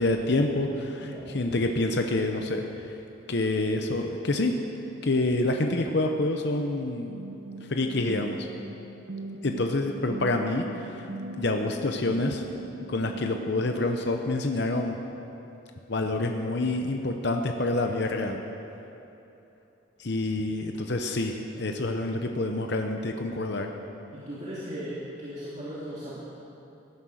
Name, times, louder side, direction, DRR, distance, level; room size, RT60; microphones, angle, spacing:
voice 1, 0.0-3.0 3.3-4.5 5.0-7.2 7.7-8.5 9.4-11.0 11.4-12.4 12.9-15.0 15.9-18.4 20.0-23.7, left 2 dB, 55° left, 4 dB, 0.8 m, -27 dB
sound 1, 7.1-13.9, right 1 dB, 90° right, 1.1 m, -40 dB
voice 2, 24.1-26.2, equal, 35° right, -9 dB, 2.4 m, -37 dB
16.0 x 11.5 x 6.4 m, 2.9 s
head